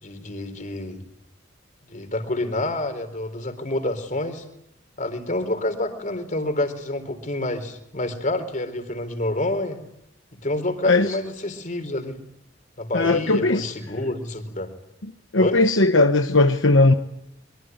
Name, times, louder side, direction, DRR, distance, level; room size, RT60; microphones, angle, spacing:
voice 1, 0.0-1.0 1.9-4.4 5.0-9.8 10.4-12.2 12.8-14.7 15.4-15.6, left 1 dB, 40° left, 4.0 m, -28 dB
voice 2, 12.9-13.7 15.3-16.9, left 2 dB, 75° left, 1.2 m, -18 dB
23.5 x 23.0 x 9.3 m
head